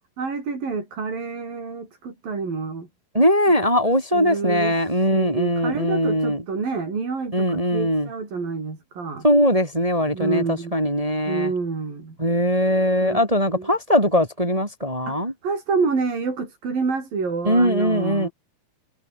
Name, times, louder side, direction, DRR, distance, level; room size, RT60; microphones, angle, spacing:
voice 1, 0.2-2.9 4.1-4.7 5.1-9.3 10.1-10.7 11.3-12.2 13.0-13.2 13.5-13.7 15.1-18.3, right 4 dB, 70° right, 8.1 m, -28 dB
voice 2, 3.1-6.4 7.3-8.1 9.2-11.5 12.2-15.3 17.4-18.3, equal, 10° right, 2.5 m, -20 dB
omnidirectional pair, 4.1 m